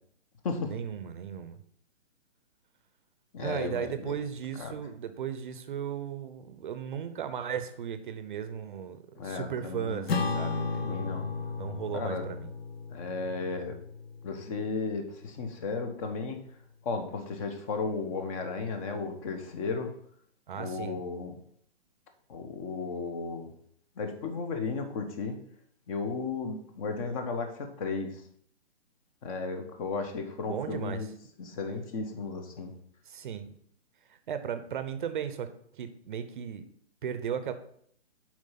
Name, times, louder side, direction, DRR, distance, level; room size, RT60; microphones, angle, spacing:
voice 1, 0.7-1.6 3.4-12.5 20.5-21.0 30.5-31.1 33.1-33.5 34.1-35.5 35.7-36.7 37.0-37.5, right 8 dB, 45° right, 11 dB, 0.8 m, -36 dB
voice 2, 3.3-4.2 4.6-4.8 9.2-10.1 10.8-11.3 11.9-12.2 12.9-13.8 14.2-16.4 16.8-19.9 20.5-21.4 22.3-23.5 24.0-25.4 25.9-28.2 29.2-31.1 31.4-32.7, left 4 dB, 30° left, 6 dB, 1.2 m, -34 dB
Acoustic guitar / Strum, 10.1-14.8, left 4 dB, 60° left, 1.2 m, -34 dB
7.5 x 4.8 x 5.8 m, 0.65 s
hypercardioid pair, 140°, 35 cm